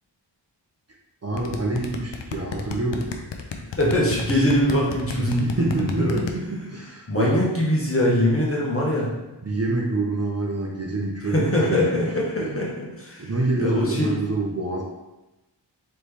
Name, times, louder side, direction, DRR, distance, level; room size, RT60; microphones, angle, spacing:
voice 1, 1.2-3.2 5.2-7.4 9.4-12.1 12.4-12.6 13.2-14.8, right 2 dB, 35° right, -1 dB, 0.7 m, -27 dB
sound 1, 1.4-6.3, left 6 dB, 75° left, 0.6 m, -32 dB
voice 2, 3.8-6.2 7.1-9.1 11.2-13.3 13.6-14.2, left 1 dB, 30° left, -4 dB, 1.3 m, -22 dB
4.1 x 3.2 x 3.4 m, 1.0 s
wide cardioid pair, 60°, 44 cm